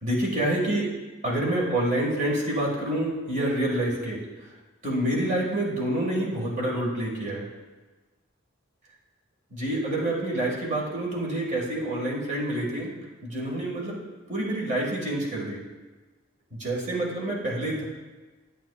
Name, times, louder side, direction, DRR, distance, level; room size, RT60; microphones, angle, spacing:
voice 1, 0.0-0.9 1.2-4.2 4.8-7.5 9.5-12.9 13.2-14.0 14.3-15.6 16.5-17.8, right 1 dB, 40° right, -3 dB, 1.8 m, -27 dB
9.1 x 8.3 x 2.4 m, 1.2 s
head